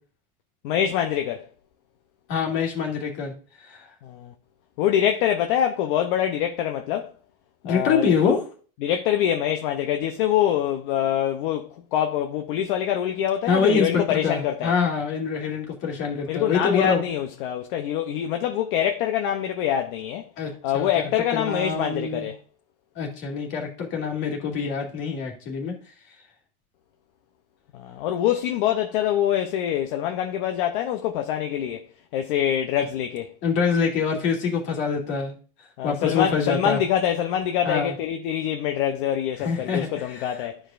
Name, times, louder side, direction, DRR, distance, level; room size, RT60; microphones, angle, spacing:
voice 1, 0.6-1.5 4.0-4.3 4.8-7.1 7.6-8.2 8.8-14.7 16.1-20.3 20.6-22.4 27.7-31.9 32.1-33.3 35.8-40.6, left 10 dB, 60° left, 0.8 m, -25 dB
voice 2, 2.3-3.3 3.6-3.9 7.6-8.4 13.5-17.0 20.4-20.9 21.3-22.3 23.0-25.8 33.4-35.4 35.8-36.8 37.6-37.9 39.4-40.4, left 5 dB, 40° left, 2.3 m, -25 dB
12.0 x 4.9 x 2.5 m
supercardioid pair, 165°, 30 cm